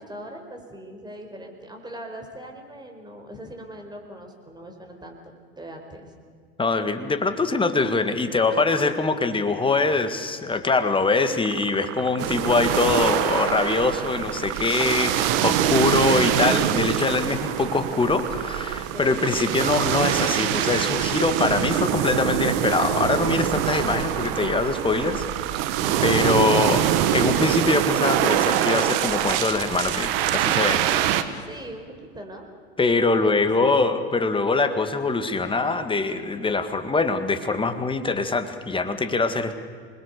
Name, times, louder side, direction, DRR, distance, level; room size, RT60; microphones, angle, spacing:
voice 1, 0.0-6.1 18.8-19.3 25.8-26.9 31.3-31.8 32.1-32.5 33.1-33.8, equal, 15° right, 2 dB, 4.8 m, -40 dB
voice 2, 6.6-25.3 25.6-25.7 26.0-26.8 27.1-30.8 31.4-31.5 32.8-39.5, left 3 dB, 15° left, 9 dB, 2.0 m, -23 dB
sound 1, 11.4-28.6, right 13 dB, 45° right, 1.2 m, -37 dB
sound 2, 12.2-31.2, right 11 dB, 60° right, 1.5 m, -24 dB
26.5 x 21.0 x 6.9 m, 2.1 s
hypercardioid pair, 80°, 32 cm